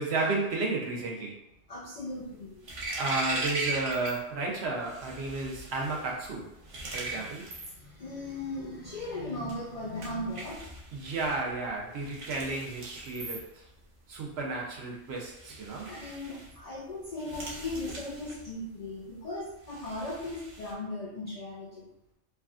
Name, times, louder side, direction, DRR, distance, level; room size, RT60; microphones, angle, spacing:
voice 1, 0.0-1.4 3.0-6.5 6.9-7.5 10.9-13.6 14.1-15.9, right 3 dB, 65° right, -1 dB, 0.9 m, -32 dB
voice 2, 1.7-2.7 6.8-7.3 7.7-10.6 15.8-21.9, left 1 dB, 60° left, -4 dB, 0.4 m, -38 dB
sound 1, 2.1-4.2 4.5-20.7, right 2 dB, 45° right, 0.4 m, -40 dB
3.3 x 2.2 x 2.4 m, 0.83 s
omnidirectional pair, 1.2 m